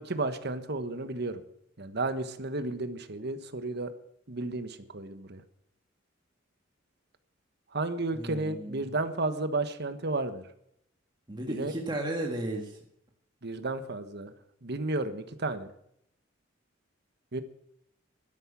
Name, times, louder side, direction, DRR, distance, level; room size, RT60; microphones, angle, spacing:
voice 1, 0.0-1.4 1.8-3.9 4.3-5.4 7.7-10.5 11.5-11.7 13.4-14.3 14.6-15.7 17.3-17.4, right 2 dB, 60° right, 10 dB, 1.3 m, -32 dB
voice 2, 8.1-8.9 11.3-12.8, right 1 dB, 25° right, 0 dB, 1.8 m, -34 dB
12.5 x 11.0 x 7.3 m, 0.73 s
head